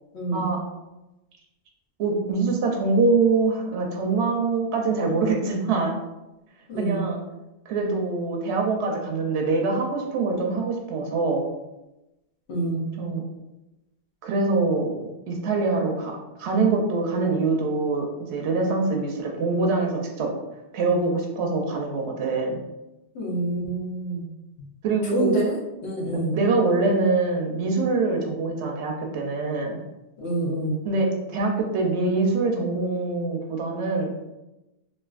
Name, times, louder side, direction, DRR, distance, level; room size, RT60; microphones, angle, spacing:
voice 1, 0.1-0.4 6.7-7.1 12.5-12.9 23.1-24.3 25.1-26.4 30.2-30.8, right 2 dB, 80° left, -3 dB, 1.1 m, -27 dB
voice 2, 2.0-5.9 6.8-7.2 7.7-11.5 13.0-13.2 14.2-15.0 15.3-20.3 20.7-22.6 24.8-25.3 26.3-29.8 30.8-34.1, right 3 dB, 80° right, 1 dB, 0.8 m, -24 dB
3.2 x 2.5 x 2.3 m, 0.99 s
omnidirectional pair, 1.1 m